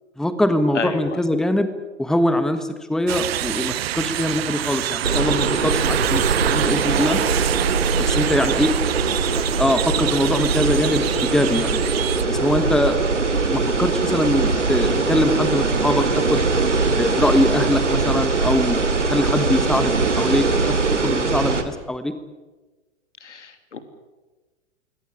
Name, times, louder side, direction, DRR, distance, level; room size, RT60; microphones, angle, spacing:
voice 1, 0.2-1.7 2.0-7.2 8.0-8.7 9.1-11.8 12.3-13.0 13.3-16.4 17.0-18.8 19.1-20.8 21.0-22.1, left 1 dB, ahead, 10 dB, 1.4 m, -22 dB
voice 2, 0.7-1.2 9.0-9.5 23.2-23.8, left 5 dB, 80° left, 9 dB, 3.1 m, -31 dB
sound 1, 3.1-12.2, right 13 dB, 55° right, 0.9 m, -26 dB
sound 2, 5.0-21.6, right 4 dB, 90° right, 2.7 m, -21 dB
23.5 x 18.0 x 10.0 m, 1.2 s
figure-of-eight pair, 110°, 35 cm